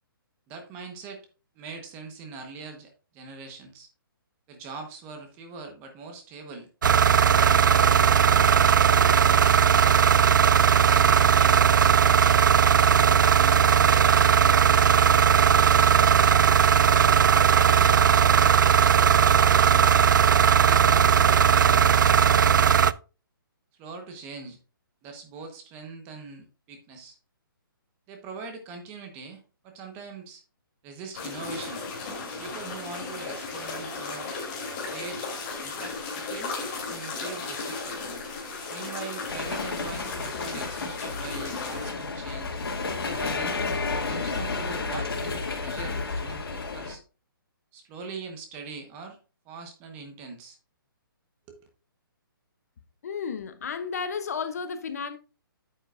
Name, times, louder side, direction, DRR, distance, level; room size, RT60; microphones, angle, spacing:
voice 1, 0.5-1.2 1.5-3.9 4.5-6.7 7.3-7.6 8.0-9.9 10.9-11.6 15.4-17.1 20.6-22.9 23.8-24.6 25.0-27.2 28.1-30.4 30.8-31.8 32.4-34.3 34.9-35.3 35.6-36.6 36.9-38.0 38.7-42.6 43.0-43.6 43.9-47.0 47.7-49.2 49.4-50.6 51.5-51.6, right 4 dB, 15° right, 1.1 m, -42 dB
sound 1, 6.8-22.9, right 8 dB, 55° right, 0.4 m, -18 dB
sound 2, 31.1-41.9, left 4 dB, 25° left, 2.8 m, -35 dB
sound 3, 39.3-46.9, left 4 dB, 85° left, 2.3 m, -31 dB
voice 2, 53.0-55.2, left 6 dB, 45° left, 0.7 m, -32 dB
9.0 x 7.8 x 2.5 m
hypercardioid pair, 170°, 12 cm